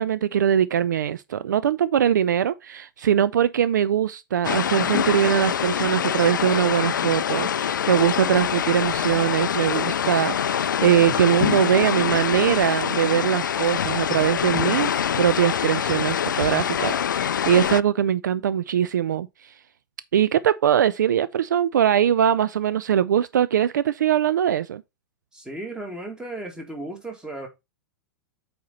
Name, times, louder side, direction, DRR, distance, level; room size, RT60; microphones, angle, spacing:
voice 1, 0.0-19.5 20.1-24.8, right 9 dB, 60° right, 0.4 m, -22 dB
sound 1, 4.4-17.8, left 8 dB, 65° left, 0.4 m, -25 dB
voice 2, 25.3-27.5, right 2 dB, 5° right, 2.0 m, -35 dB
8.3 x 4.3 x 4.0 m
figure-of-eight pair, 100°, 11 cm